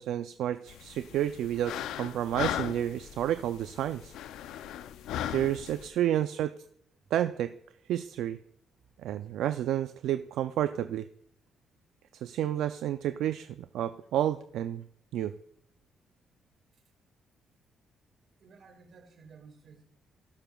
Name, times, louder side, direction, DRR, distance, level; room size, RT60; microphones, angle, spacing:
voice 1, 0.0-4.1 5.3-6.5 7.1-7.5 7.9-8.4 9.0-11.1 12.1-14.8 15.1-15.3, right 11 dB, 80° right, 10 dB, 0.3 m, -30 dB
sound 1, 0.7-5.9, left 11 dB, 85° left, 0.4 m, -38 dB
voice 2, 18.4-19.8, right 5 dB, 60° right, 5 dB, 2.0 m, -54 dB
18.0 x 6.9 x 2.3 m, 0.71 s
cardioid pair, 90°, 0 cm